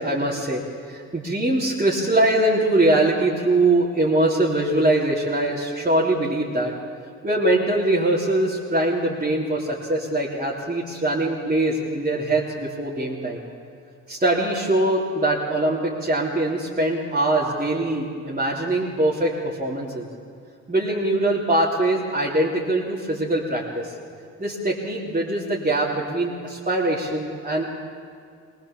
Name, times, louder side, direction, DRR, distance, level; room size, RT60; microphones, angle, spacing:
voice 1, 0.0-6.7 7.2-13.4 14.1-20.1 20.7-23.9 24.4-27.7, right 1 dB, 20° right, -6 dB, 3.3 m, -22 dB
20.5 x 19.5 x 7.3 m, 2.2 s
supercardioid pair, 60°, 37 cm